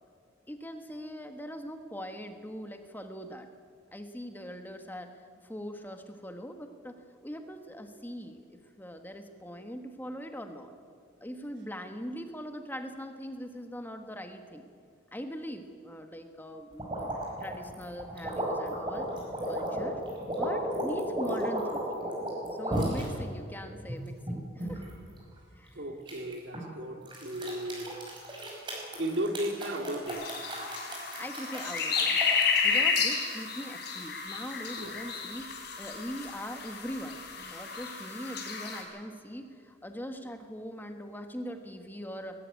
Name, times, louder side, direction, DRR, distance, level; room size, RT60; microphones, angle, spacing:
voice 1, 0.5-3.5 3.9-10.7 11.2-14.7 15.1-19.1 19.5-20.0 20.3-21.8 22.5-24.8 25.5-25.8 31.2-32.3 32.6-42.4, equal, 10° left, 6 dB, 1.2 m, -41 dB
sound 1, 16.8-23.0 23.6-24.9 26.1-26.6 27.0-32.5, right 1 dB, 25° right, 5.5 m, -34 dB
voice 2, 25.8-27.9 29.0-30.3 34.8-34.9, right 1 dB, 65° right, 5 dB, 2.2 m, -35 dB
sound 2, 30.1-38.8, left 5 dB, 55° left, 4.0 m, -31 dB
20.5 x 14.5 x 9.5 m, 2.1 s
head